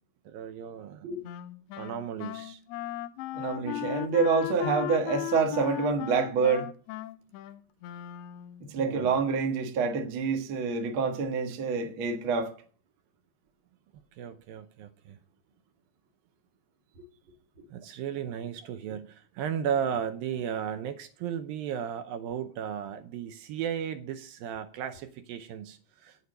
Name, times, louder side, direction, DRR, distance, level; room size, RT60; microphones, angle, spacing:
voice 1, 0.3-1.2 1.8-2.6 8.8-9.1 14.2-15.2 17.7-26.2, right 8 dB, 75° right, 2.3 m, -35 dB
Wind instrument woodwind instrument, 1.2-8.7, left 15 dB, 80° left, 2.6 m, -37 dB
voice 2, 3.3-6.7 8.7-12.5, right 5 dB, 60° right, 1.3 m, -27 dB
9.2 x 8.2 x 6.5 m
omnidirectional pair, 4.6 m